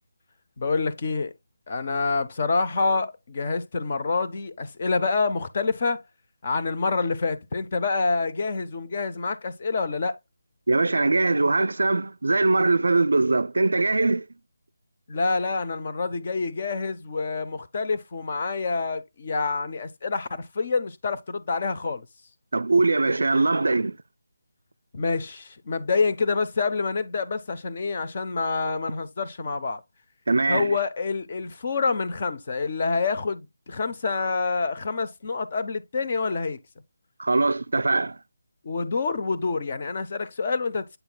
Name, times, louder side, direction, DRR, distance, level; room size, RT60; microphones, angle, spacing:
voice 1, 0.6-1.3 1.7-6.0 6.4-10.1 15.1-22.1 24.9-29.8 30.5-36.6 38.6-41.0, left 4 dB, 35° left, 0.8 m, -27 dB
voice 2, 10.7-14.2 22.5-24.0 30.3-30.7 37.2-38.2, right 3 dB, 80° right, 0.4 m, -22 dB
8.0 x 5.7 x 2.2 m
figure-of-eight pair, 170°, 0 cm